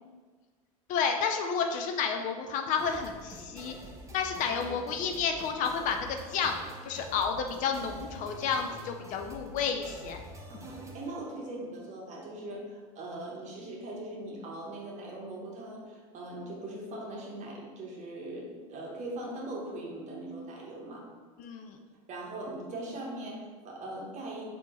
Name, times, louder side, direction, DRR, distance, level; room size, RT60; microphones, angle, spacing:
voice 1, 0.9-3.7 4.1-6.6 6.8-10.2 21.4-21.8, left 6 dB, 45° left, 5 dB, 0.4 m, -31 dB
sound 1, 2.8-11.1, equal, 15° right, 0.6 m, -47 dB
voice 2, 10.5-21.1 22.1-24.5, right 1 dB, 40° right, -2 dB, 1.2 m, -40 dB
3.6 x 2.9 x 3.8 m, 1.4 s
hypercardioid pair, 80°, 18 cm